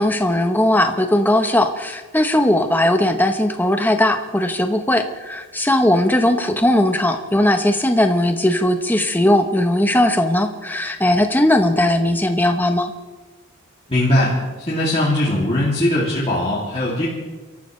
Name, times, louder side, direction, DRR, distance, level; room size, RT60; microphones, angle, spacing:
voice 1, 0.0-12.9, left 1 dB, 10° left, 6 dB, 0.9 m, -18 dB
voice 2, 13.9-17.1, left 1 dB, 25° left, -8 dB, 2.6 m, -20 dB
29.5 x 14.0 x 3.2 m, 1.3 s
head